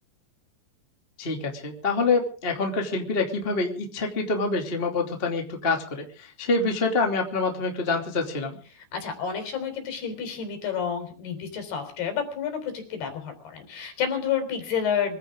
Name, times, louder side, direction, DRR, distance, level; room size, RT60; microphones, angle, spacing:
voice 1, 1.2-8.6, left 3 dB, 20° left, 2 dB, 1.8 m, -26 dB
voice 2, 8.7-15.2, left 7 dB, 55° left, 6 dB, 5.6 m, -30 dB
24.5 x 15.5 x 3.7 m, 0.38 s
omnidirectional pair, 5.6 m